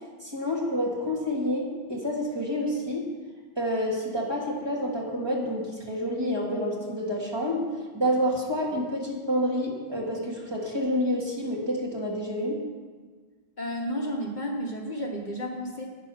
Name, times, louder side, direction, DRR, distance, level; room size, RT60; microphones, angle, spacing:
voice 1, 0.2-3.1 3.6-7.7 7.9-12.6, equal, 25° right, -3 dB, 2.0 m, -28 dB
voice 2, 13.6-15.9, equal, 45° left, 1 dB, 1.1 m, -32 dB
11.5 x 8.1 x 5.6 m, 1.5 s
omnidirectional pair, 1.1 m